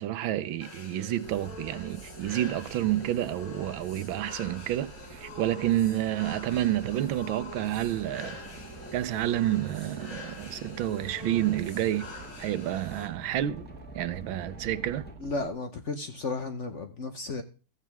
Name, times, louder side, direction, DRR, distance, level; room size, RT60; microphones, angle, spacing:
voice 1, 0.0-8.4 8.9-12.1 12.4-13.7 13.9-15.1, right 13 dB, 80° right, 1.5 m, -29 dB
sound 1, 0.6-13.1, left 3 dB, 75° left, 3.4 m, -45 dB
Boat Water vehicle, 1.2-15.5, right 6 dB, 50° right, 1.4 m, -48 dB
sound 2, 1.8-15.1, left 1 dB, 5° left, 1.7 m, -50 dB
voice 2, 15.2-17.4, left 3 dB, 45° left, 1.0 m, -33 dB
15.0 x 9.0 x 3.5 m
omnidirectional pair, 2.2 m